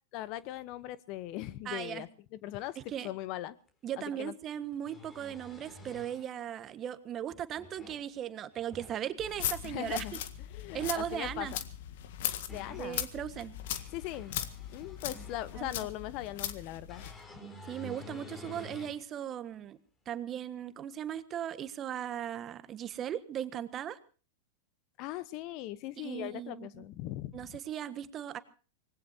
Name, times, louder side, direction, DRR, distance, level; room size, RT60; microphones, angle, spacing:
voice 1, 0.1-2.8 3.0-3.6 4.2-4.3 9.6-10.2 10.5-11.6 12.5-13.0 13.9-14.5 14.7-17.0 25.0-27.5, left 14 dB, 50° left, 18 dB, 1.0 m, -40 dB
voice 2, 1.6-2.0 2.9-3.1 3.8-10.0 10.7-11.5 12.7-13.5 15.6-15.7 17.7-19.8 20.0-24.0 26.0-26.7 27.3-28.4, right 10 dB, 30° right, 12 dB, 1.4 m, -38 dB
sound 1, 3.7-3.8 4.6-6.3 7.3-8.1 8.5-9.0 10.6-11.0 12.0-12.9 13.5-15.7 16.9-19.0 19.5-19.6 21.1-21.2, left 1 dB, 20° left, 4.0 m, -50 dB
sound 2, 9.2-17.2, left 11 dB, 65° left, 1.7 m, -39 dB
25.0 x 19.5 x 2.8 m, 0.37 s
hypercardioid pair, 115°, 0 cm